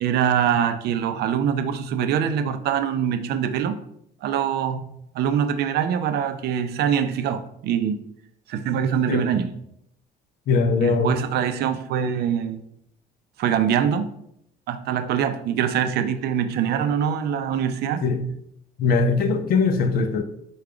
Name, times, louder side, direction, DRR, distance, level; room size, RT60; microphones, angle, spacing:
voice 1, 0.0-3.8 4.2-4.8 5.1-8.0 8.5-9.5 10.8-12.6 13.4-14.1 14.7-18.0, right 8 dB, 75° right, 0.5 m, -23 dB
voice 2, 9.1-9.4 10.5-11.2 18.0-18.3 18.8-20.2, left 4 dB, 60° left, 0.6 m, -21 dB
4.8 x 2.3 x 4.9 m
cardioid pair, 110°, 17 cm